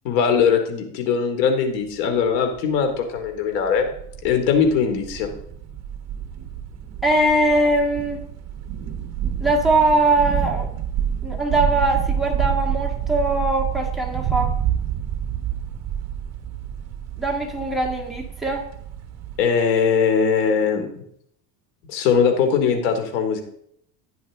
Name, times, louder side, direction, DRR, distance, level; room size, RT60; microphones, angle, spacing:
voice 1, 0.0-3.9 4.2-5.3 19.4-20.9 21.9-23.4, left 6 dB, 90° left, 6 dB, 2.7 m, -20 dB
sound 1, 2.6-2.7 3.0-3.3 3.6-19.4, right 9 dB, 35° right, 1.3 m, -28 dB
voice 2, 7.0-8.2 9.4-10.7 11.2-14.5 17.2-18.7, right 2 dB, ahead, 0 dB, 1.8 m, -21 dB
15.0 x 10.5 x 3.7 m, 0.70 s
cardioid pair, 155°, 47 cm